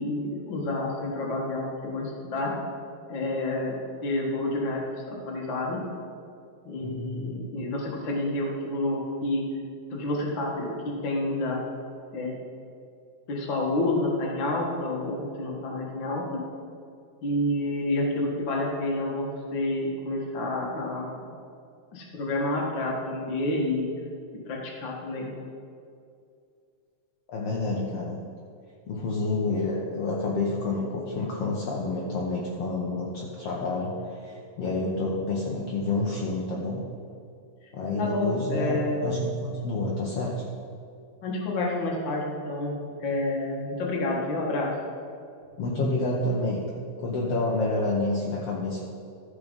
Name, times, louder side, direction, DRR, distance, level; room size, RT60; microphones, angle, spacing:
voice 1, 0.0-2.5 3.1-3.8 4.0-5.8 6.6-9.5 9.9-11.6 12.1-12.3 13.3-16.4 17.2-21.2 21.9-23.9 24.5-25.3 38.0-39.1 41.2-42.7 43.0-44.7, left 2 dB, 45° left, -1 dB, 1.9 m, -29 dB
voice 2, 6.8-7.4 27.3-28.2 28.9-36.8 37.7-40.5 45.6-46.7 47.0-48.8, left 2 dB, 65° left, -3 dB, 1.8 m, -29 dB
13.5 x 4.8 x 5.3 m, 2.4 s
omnidirectional pair, 3.4 m